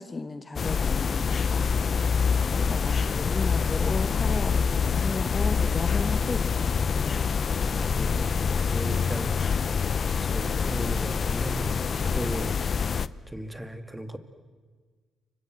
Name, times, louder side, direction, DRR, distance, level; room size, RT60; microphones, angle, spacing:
voice 1, 0.0-1.7 2.6-6.7, left 3 dB, 25° left, 10 dB, 1.2 m, -34 dB
sound 1, 0.6-13.1, left 6 dB, 45° left, 0.8 m, -26 dB
voice 2, 7.6-9.3 10.0-12.6 13.3-14.2, right 1 dB, 5° right, 9 dB, 2.4 m, -37 dB
29.5 x 25.0 x 7.9 m, 1.5 s
cardioid pair, 90°, 0 cm